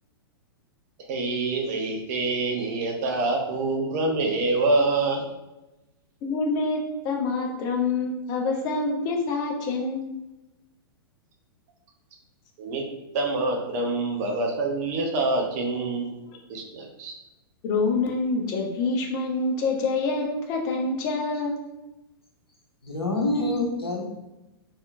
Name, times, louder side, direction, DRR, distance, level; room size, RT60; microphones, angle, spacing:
voice 1, 1.1-5.2 12.6-12.8 13.1-16.1 16.5-17.1, right 2 dB, 40° right, 1 dB, 0.7 m, -26 dB
voice 2, 6.2-6.8 7.0-10.0 16.3-16.4 17.6-21.5, left 3 dB, 30° left, 0 dB, 0.7 m, -26 dB
voice 3, 22.8-24.1, left 2 dB, 80° left, -1 dB, 0.8 m, -26 dB
3.3 x 2.8 x 2.4 m, 0.97 s
figure-of-eight pair, 105°, 13 cm